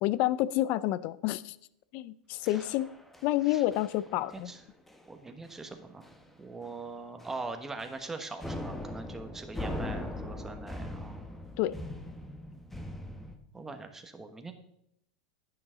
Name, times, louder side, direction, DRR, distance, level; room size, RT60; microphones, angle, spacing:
voice 1, 0.0-1.6 1.9-2.9 3.2-4.5 11.6-11.8, left 15 dB, 50° left, 19 dB, 0.5 m, -29 dB
sound 1, 2.5-3.4 3.7-4.0 4.3-4.6 4.9-5.1 5.4-5.5 6.0-6.4 6.6-6.8 7.2-8.1 8.4-13.4, left 1 dB, 5° left, 1.2 m, -40 dB
voice 2, 4.2-4.6 5.1-6.1 6.4-11.2 12.5-12.8 13.5-14.5, right 3 dB, 10° right, 6 dB, 1.3 m, -42 dB
10.5 x 9.0 x 3.8 m, 0.75 s
hypercardioid pair, 110°, 3 cm